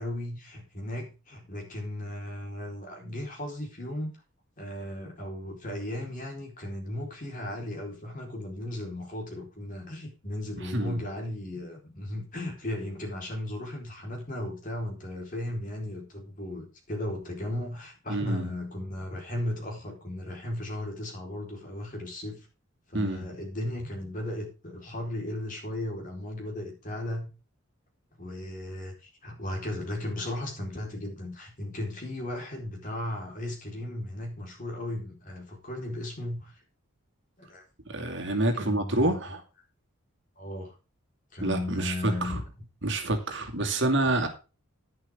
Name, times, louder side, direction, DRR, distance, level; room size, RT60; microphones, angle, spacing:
voice 1, 0.0-4.1 4.6-22.5 22.9-27.3 28.2-36.6 37.4-37.6 38.5-39.1 40.4-40.7 41.3-42.4 44.0-44.1, left 1 dB, 40° left, 4.4 m, -36 dB
voice 2, 10.6-11.0 18.1-18.5 22.9-23.2 37.9-39.4 41.4-42.4 42.8-44.3, right 2 dB, 55° right, 2.4 m, -28 dB
11.0 x 10.5 x 3.7 m
head